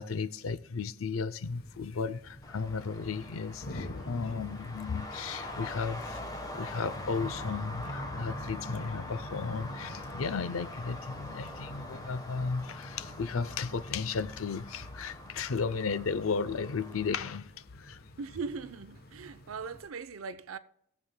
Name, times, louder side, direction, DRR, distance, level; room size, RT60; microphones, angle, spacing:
voice 1, 0.0-6.2 6.5-18.0, left 5 dB, 80° left, 0.5 m, -34 dB
sound 1, 1.4-19.9, left 1 dB, 50° left, 0.9 m, -46 dB
Traffic noise roadway noise, 2.4-17.4, left 1 dB, 20° left, 1.1 m, -44 dB
voice 2, 18.2-20.6, right 5 dB, 85° right, 0.6 m, -39 dB
21.0 x 7.4 x 2.2 m
head